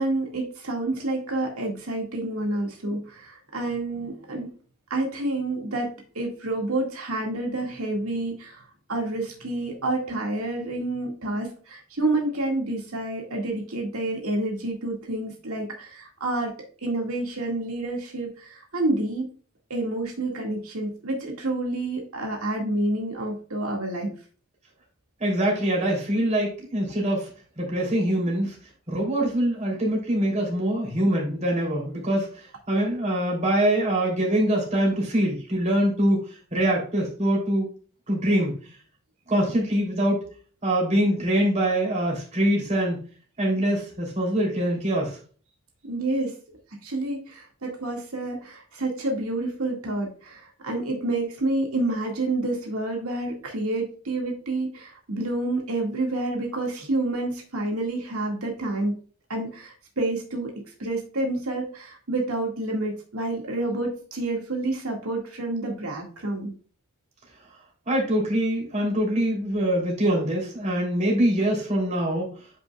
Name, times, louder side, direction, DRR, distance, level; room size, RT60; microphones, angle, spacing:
voice 1, 0.0-4.5 4.9-16.5 16.8-19.3 19.7-24.1 45.8-46.3 46.8-58.9 59.3-66.5, right 2 dB, 90° right, 0 dB, 1.9 m, -29 dB
voice 2, 25.2-27.3 27.6-28.6 28.9-36.2 36.5-37.7 38.1-38.6 39.3-40.2 40.6-43.0 43.4-45.2 67.9-72.3, right 1 dB, 35° right, -2 dB, 3.0 m, -24 dB
9.0 x 5.3 x 2.3 m, 0.40 s
head